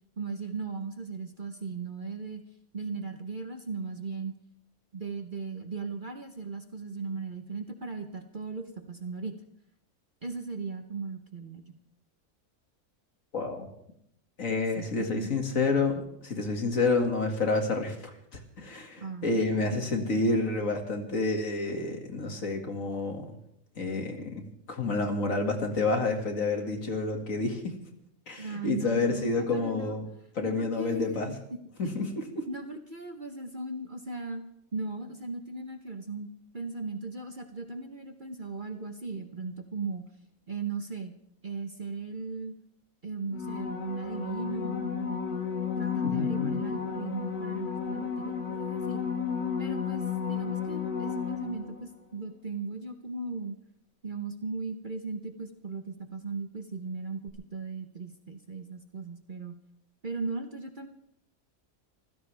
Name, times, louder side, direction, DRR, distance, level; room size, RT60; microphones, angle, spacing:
voice 1, 0.2-2.4 2.7-4.3 4.9-9.4 10.2-11.6 14.8-15.3 19.0-19.9 28.4-29.9 30.4-31.6 32.5-34.4 34.7-36.3 36.5-40.1 40.5-41.1 41.4-42.5 43.0-45.4 45.8-49.0 49.6-53.6 54.0-59.6 60.0-60.9, right 4 dB, 35° right, 6 dB, 1.1 m, -37 dB
voice 2, 13.3-13.7 14.4-18.1 18.6-23.3 23.8-27.7 28.3-30.1 30.4-31.3 31.8-32.4 46.0-46.6, left 3 dB, 60° left, 4 dB, 2.6 m, -29 dB
sound 1, 43.3-51.9 57.3-57.4, left 7 dB, 85° left, 2.2 m, -32 dB
25.5 x 16.0 x 3.4 m, 0.72 s
omnidirectional pair, 1.6 m